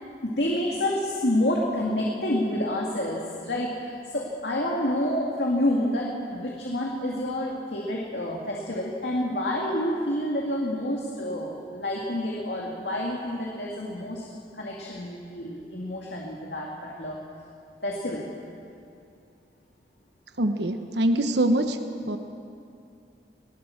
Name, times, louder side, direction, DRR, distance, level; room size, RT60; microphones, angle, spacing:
voice 1, 0.2-14.2 14.5-17.2 17.8-18.3, left 1 dB, 75° left, -2 dB, 2.3 m, -28 dB
voice 2, 20.4-21.8 22.0-22.2, right 1 dB, 80° right, 7 dB, 1.1 m, -24 dB
20.0 x 19.5 x 7.2 m, 2.5 s
head